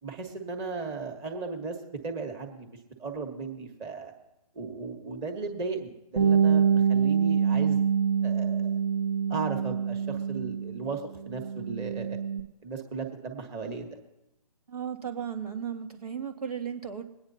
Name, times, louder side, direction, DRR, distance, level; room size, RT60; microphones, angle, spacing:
voice 1, 0.0-1.8 2.0-2.7 3.0-4.1 4.5-7.8 8.2-8.8 9.3-12.2 12.6-13.9, right 4 dB, 20° right, 3 dB, 1.6 m, -36 dB
Bass guitar, 6.2-10.9 11.2-12.4, right 7 dB, 40° right, 1.2 m, -25 dB
voice 2, 14.7-17.0, right 8 dB, 75° right, 4 dB, 1.9 m, -35 dB
22.5 x 9.6 x 2.8 m, 0.91 s
figure-of-eight pair, 145°, 19 cm